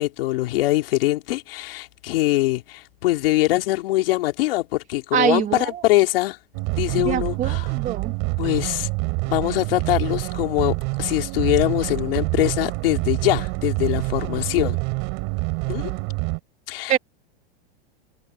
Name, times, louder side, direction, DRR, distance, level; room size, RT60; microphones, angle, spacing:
voice 1, 0.0-6.4 6.8-7.7 8.4-8.9 9.3-14.8 15.7-15.9 16.7-17.0, left 17 dB, 60° left, 2.7 m, -23 dB
voice 2, 5.1-5.8 7.0-8.1 16.9-17.0, right 10 dB, 25° right, 2.0 m, -24 dB
sound 1, 6.5-16.4, right 31 dB, 40° right, 4.9 m, -26 dB
supercardioid pair, 155°, 32 cm